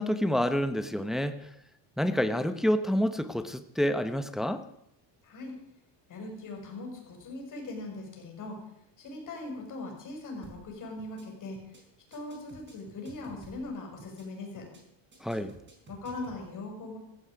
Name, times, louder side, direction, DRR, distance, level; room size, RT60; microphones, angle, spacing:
voice 1, 0.0-1.5 2.0-4.6 15.2-15.5, equal, ahead, 10 dB, 0.7 m, -28 dB
voice 2, 5.2-5.6 6.1-8.6 9.0-11.6 12.1-14.7 15.9-17.0, left 2 dB, 45° left, 1 dB, 6.2 m, -40 dB
sound 1, 10.4-10.7 11.0-11.2 11.5-11.8 12.1-13.7 14.0-14.2 14.5-14.8 15.1-16.4, right 3 dB, 25° right, 4.5 m, -52 dB
16.0 x 14.0 x 5.0 m, 0.79 s
cardioid pair, 130°, 45 cm